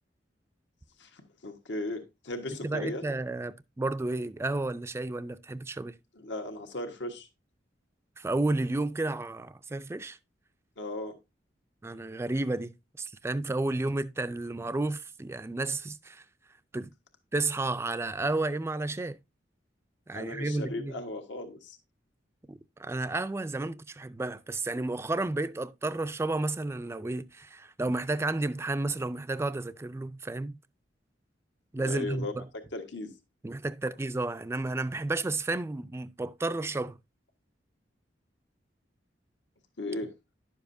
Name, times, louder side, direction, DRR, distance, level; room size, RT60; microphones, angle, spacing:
voice 1, 1.0-3.0 6.2-7.3 10.8-11.1 20.1-21.8 31.8-32.3 32.7-33.1 39.8-40.1, left 2 dB, 75° left, 1.4 m, -36 dB
voice 2, 2.6-5.9 8.2-10.2 11.8-16.2 16.7-16.9 17.3-19.2 20.1-20.9 22.5-30.6 31.7-32.5 33.4-37.0, right 2 dB, 15° right, 0.3 m, -32 dB
11.0 x 7.1 x 2.6 m
head